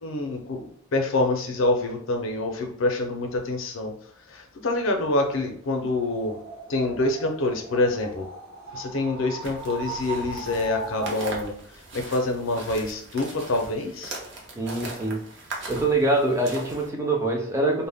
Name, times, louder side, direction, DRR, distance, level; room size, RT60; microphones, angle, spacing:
voice 1, 0.0-3.9 4.3-6.4 6.7-8.3 8.7-14.2, left 2 dB, 70° left, 4 dB, 0.5 m, -26 dB
sound 1, 5.7-11.5, right 2 dB, 80° right, 0.9 m, -39 dB
sound 2, 9.4-16.9, right 2 dB, 55° right, 0.6 m, -39 dB
voice 2, 14.6-15.2 15.7-17.9, right 2 dB, 15° right, 0 dB, 0.4 m, -24 dB
2.1 x 2.1 x 3.4 m, 0.64 s
head